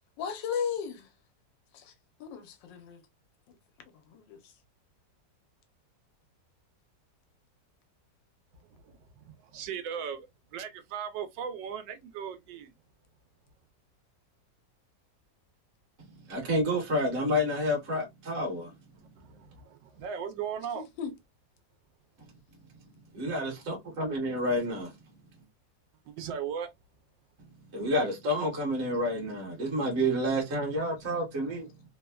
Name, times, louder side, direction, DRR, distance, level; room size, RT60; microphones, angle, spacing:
voice 1, 0.2-1.1 1.7-1.9 2.2-3.0 4.1-4.5 20.7-21.1, left 7 dB, 85° left, 1.4 m, -35 dB
voice 2, 8.7-12.7 19.2-20.9 26.1-26.7, right 7 dB, 85° right, 1.3 m, -38 dB
voice 3, 16.3-18.7 23.1-24.9 27.7-31.7, equal, 45° right, 1.1 m, -29 dB
3.3 x 2.1 x 2.2 m
omnidirectional pair, 1.9 m